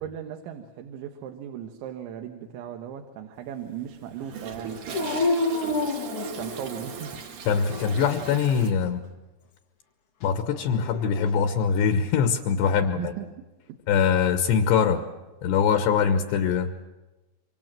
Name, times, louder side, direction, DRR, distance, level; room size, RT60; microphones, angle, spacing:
voice 1, 0.0-5.3 6.4-7.3 12.8-13.3, right 9 dB, 75° right, 4 dB, 3.6 m, -37 dB
Toilet flush, 3.4-8.7, right 6 dB, 50° right, 3.1 m, -39 dB
Dog, 4.9-6.8 7.5-8.3 10.5-11.4, left 2 dB, 90° left, 1.2 m, -29 dB
voice 2, 7.5-9.0 10.2-13.1 13.9-15.0 15.4-16.7, left 7 dB, 70° left, 8 dB, 3.0 m, -23 dB
26.5 x 25.5 x 7.5 m, 1.1 s
omnidirectional pair, 5.6 m